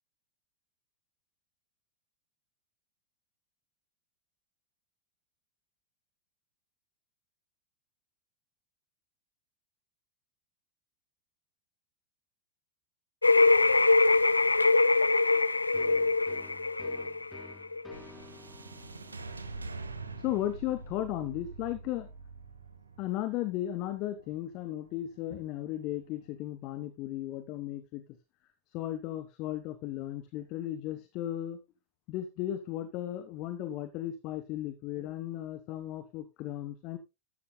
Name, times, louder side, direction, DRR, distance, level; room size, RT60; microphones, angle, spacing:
sound 1, 13.2-17.9, left 3 dB, 80° left, 0.6 m, -23 dB
sound 2, 15.7-23.2, left 3 dB, 10° left, 2.4 m, -54 dB
sound 3, 17.9-26.3, right 3 dB, 80° right, 1.2 m, -45 dB
voice 1, 20.2-22.1 23.0-28.0 28.7-31.6 32.1-37.0, left 13 dB, 40° left, 10 dB, 1.2 m, -35 dB
13.0 x 12.5 x 2.3 m, 0.24 s
figure-of-eight pair, 90°, 0 cm